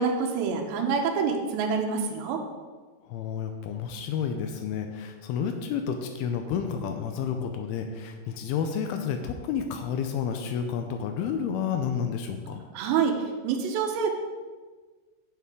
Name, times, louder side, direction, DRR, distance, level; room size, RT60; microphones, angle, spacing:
voice 1, 0.0-2.4 12.7-14.1, right 5 dB, 80° right, 1 dB, 3.0 m, -26 dB
voice 2, 3.0-12.6, left 7 dB, 90° left, 6 dB, 2.2 m, -30 dB
10.0 x 7.3 x 3.7 m, 1.4 s
omnidirectional pair, 5.1 m